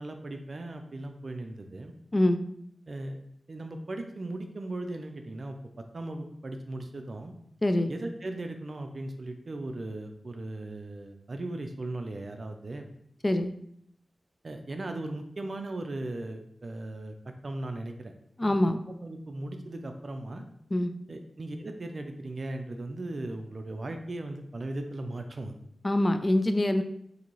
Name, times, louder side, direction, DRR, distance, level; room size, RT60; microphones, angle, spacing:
voice 1, 0.0-1.9 2.9-3.2 3.5-7.3 7.9-12.9 14.4-17.1 17.4-18.1 18.4-18.6 19.0-20.4 21.1-25.6, right 2 dB, 55° right, 5 dB, 0.4 m, -37 dB
voice 2, 7.6-7.9 13.2-13.5 18.4-18.8 20.7-20.9 25.8-26.8, left 1 dB, 30° left, 8 dB, 0.3 m, -24 dB
3.8 x 2.7 x 3.0 m, 0.70 s
wide cardioid pair, 65°, 0 cm